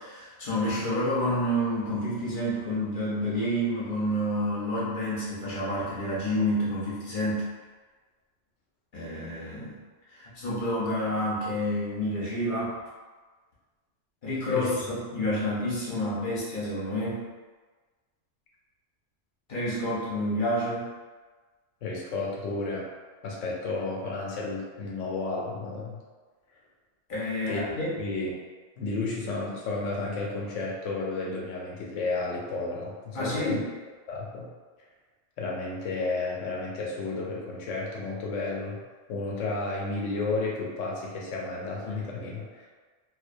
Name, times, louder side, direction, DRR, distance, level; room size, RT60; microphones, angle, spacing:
voice 1, 0.0-7.4 8.9-9.8 10.1-12.8 14.2-17.2 19.5-20.9 27.1-28.0 33.1-33.7, equal, 50° left, -7 dB, 0.7 m, -29 dB
voice 2, 21.8-22.9 23.2-26.0 27.5-27.6 28.0-28.3 28.8-33.6 34.1-34.5 35.4-38.8 39.1-42.7, left 3 dB, 85° left, -3 dB, 0.9 m, -32 dB
2.3 x 2.1 x 2.5 m, 1.4 s
omnidirectional pair, 1.3 m